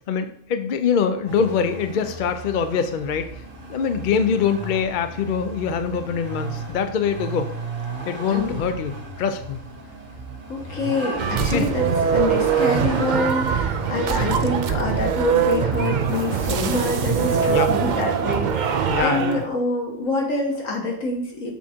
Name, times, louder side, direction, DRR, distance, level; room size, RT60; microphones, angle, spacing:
voice 1, 0.1-3.3 3.7-7.5 8.1-9.6 11.4-11.7 17.5-17.7 18.9-19.4, left 6 dB, 55° left, 8 dB, 0.5 m, -24 dB
Vehicle, 1.3-18.5, right 3 dB, 40° right, 1.2 m, -35 dB
voice 2, 8.3-8.7 10.5-11.9 12.1-21.5, left 2 dB, 75° left, 0 dB, 1.8 m, -26 dB
sound 1, 11.2-19.5, right 7 dB, 70° right, 0.4 m, -22 dB
7.0 x 3.6 x 4.4 m, 0.70 s
omnidirectional pair, 1.4 m